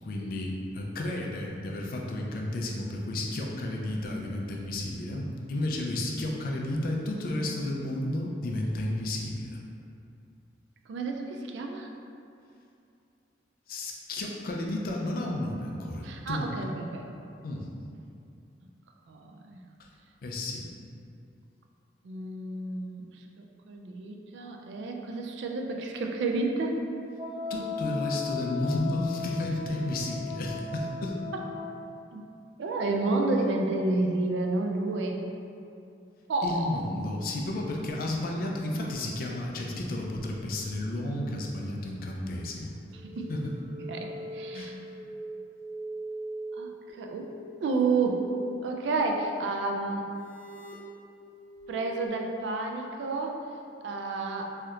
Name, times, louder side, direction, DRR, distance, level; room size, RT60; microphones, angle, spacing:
voice 1, 0.0-9.6 13.7-16.5 17.4-17.7 20.2-20.7 27.5-31.2 36.4-42.7 43.3-43.5 44.5-44.8, left 1 dB, 55° left, -1 dB, 0.4 m, -32 dB
voice 2, 10.9-11.9 16.0-17.0 19.1-19.6 22.0-26.8 32.1-32.2 32.6-35.2 36.3-36.7 43.0-43.3 43.9-44.7 46.6-47.3 47.6-48.3 48.6-50.0 51.7-53.4 53.8-54.5, right 3 dB, 85° right, 2 dB, 0.3 m, -30 dB
Wind instrument woodwind instrument, 27.1-31.9, left 5 dB, 30° right, 1.2 m, -36 dB
sound 1, 42.9-52.1, right 1 dB, 45° right, 0.8 m, -42 dB
3.3 x 2.7 x 2.4 m, 2.6 s
head